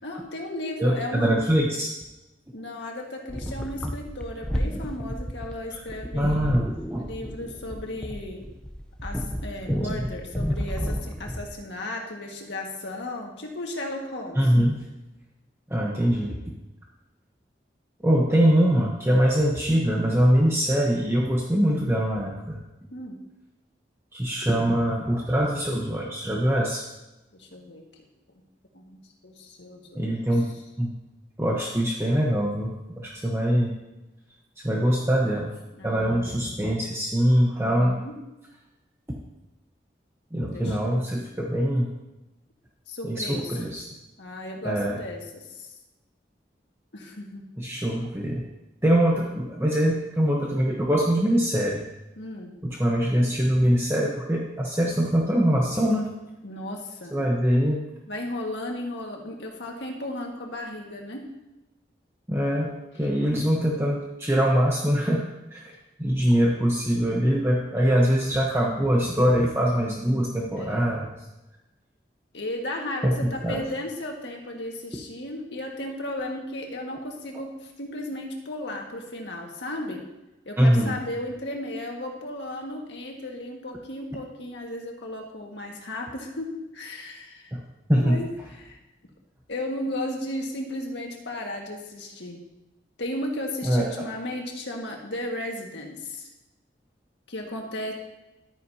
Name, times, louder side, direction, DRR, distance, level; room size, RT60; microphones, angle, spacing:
voice 1, 0.0-1.4 2.5-6.6 7.0-8.5 9.0-14.4 22.9-23.2 27.3-27.8 28.3-28.4 28.7-30.4 35.7-36.6 37.6-38.1 40.3-41.3 42.9-43.6 44.2-45.7 46.9-47.4 52.2-52.5 56.4-57.2 58.1-61.3 70.5-70.9 72.3-80.0 80.5-87.5 88.0-88.3 88.6-88.8 89.5-92.4 93.0-96.3 97.3-97.9, left 1 dB, 85° left, 1 dB, 1.8 m, -35 dB
voice 2, 0.8-1.9 5.7-5.8 6.1-7.1 9.9-10.0 14.4-14.8 15.7-16.4 18.0-22.6 24.1-26.8 29.9-30.5 30.8-30.9 31.4-33.7 34.6-35.5 35.8-38.0 40.3-41.9 43.0-43.8 44.6-45.0 47.6-48.4 48.8-51.8 52.6-56.1 57.1-57.8 62.3-62.7 63.0-65.7 66.0-71.1 73.0-73.1 73.4-73.6 80.6-81.0 87.5-87.6 87.9-88.2 93.6-93.9, equal, 15° right, -2 dB, 1.0 m, -23 dB
sound 1, 3.3-11.5, equal, 5° left, 0.7 m, -31 dB
13.0 x 9.5 x 2.8 m, 1.0 s
head